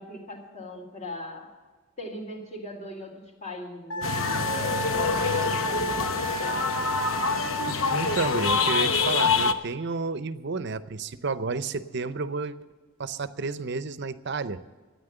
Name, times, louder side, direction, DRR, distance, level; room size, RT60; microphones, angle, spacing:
voice 1, 0.0-1.5 2.0-6.9, left 1 dB, 35° left, 0 dB, 3.5 m, -40 dB
Wind instrument woodwind instrument, 3.9-8.8, equal, 90° left, 3.2 m, -32 dB
sound 1, 4.0-9.5, left 4 dB, 75° left, 0.8 m, -26 dB
voice 2, 7.9-12.5 13.0-14.6, right 4 dB, 55° right, 13 dB, 0.7 m, -31 dB
13.5 x 9.5 x 7.9 m, 1.3 s
head